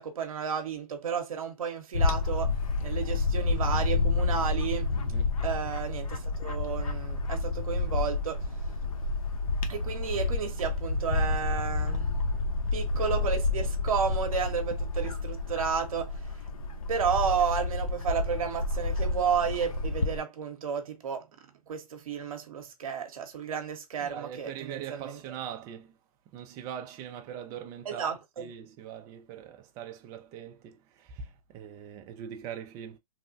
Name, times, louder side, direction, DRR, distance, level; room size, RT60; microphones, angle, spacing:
voice 1, 0.0-2.5 2.8-4.9 5.4-8.4 9.7-12.1 12.7-16.1 16.9-21.3 21.7-25.2 27.8-28.5, right 7 dB, 65° right, 0.8 m, -32 dB
Bird / Wind, 1.9-20.2, left 3 dB, 65° left, 0.7 m, -29 dB
voice 2, 24.0-25.9 26.3-33.0, right 9 dB, 15° right, 0.3 m, -41 dB
3.1 x 2.1 x 2.5 m
hypercardioid pair, 140°, 19 cm